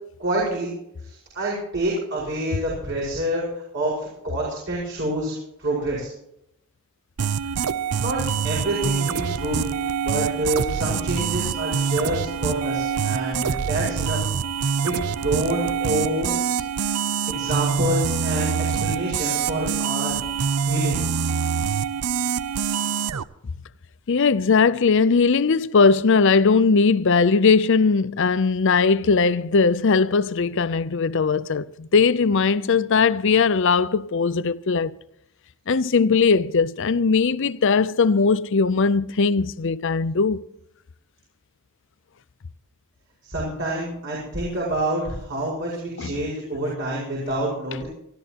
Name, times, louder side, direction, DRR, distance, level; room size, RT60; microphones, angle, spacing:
voice 1, 0.2-0.7 1.0-3.4 3.7-5.3 5.6-6.1 8.0-9.6 10.0-14.2 14.8-16.6 16.8-16.9 17.3-18.5 18.8-20.2 20.7-21.0 43.2-47.9, right 1 dB, 55° right, 5.4 m, -27 dB
sound 1, 7.2-23.2, right 6 dB, 90° right, 0.6 m, -25 dB
voice 2, 24.1-35.0 35.7-40.4 46.0-46.1, left 4 dB, 55° left, 0.6 m, -19 dB
25.0 x 13.0 x 3.0 m
head